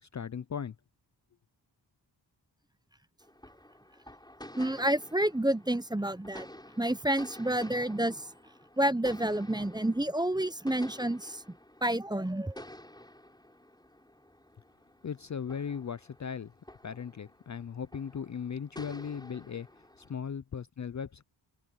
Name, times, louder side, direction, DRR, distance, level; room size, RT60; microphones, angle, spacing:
voice 1, 0.0-0.8 15.0-16.5 16.8-19.7 20.0-21.2, left 7 dB, 40° left, 0.6 m, -37 dB
sound 1, 3.2-20.1, left 1 dB, 10° left, 5.1 m, -51 dB
voice 2, 4.6-6.5 6.8-8.3 8.8-11.4 11.8-12.6, right 1 dB, 10° right, 0.9 m, -29 dB
cardioid pair, 55°, 46 cm